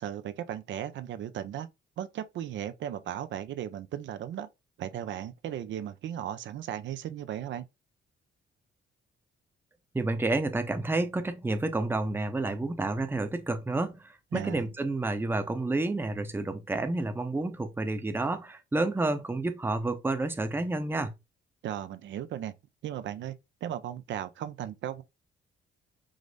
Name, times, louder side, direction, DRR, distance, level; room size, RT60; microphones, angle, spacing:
voice 1, 0.0-1.7 2.0-4.5 4.8-7.6 14.3-14.6 21.6-22.5 22.8-23.3 23.6-25.0, right 10 dB, 70° right, 0.5 m, -36 dB
voice 2, 9.9-21.1, right 2 dB, 10° right, 0.6 m, -30 dB
4.9 x 2.0 x 3.8 m
cardioid pair, 90°, 20 cm